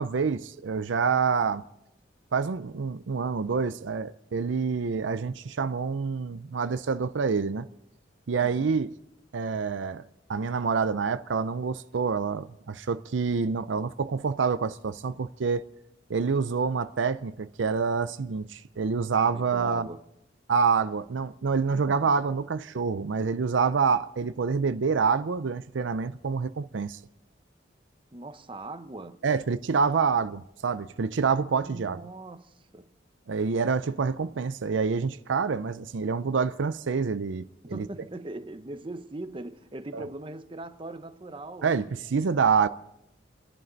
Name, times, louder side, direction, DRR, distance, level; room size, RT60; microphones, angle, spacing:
voice 1, 0.0-1.6 2.3-7.7 8.3-8.9 9.3-10.0 10.3-15.7 16.1-19.9 20.5-27.0 29.2-32.0 33.3-37.9 39.9-40.0 41.6-42.7, right 5 dB, 80° right, 0.5 m, -27 dB
voice 2, 8.4-8.7 19.3-20.0 21.7-22.1 28.1-29.2 31.6-32.9 37.6-41.7, right 2 dB, 25° right, 0.8 m, -40 dB
30.0 x 11.0 x 4.0 m
head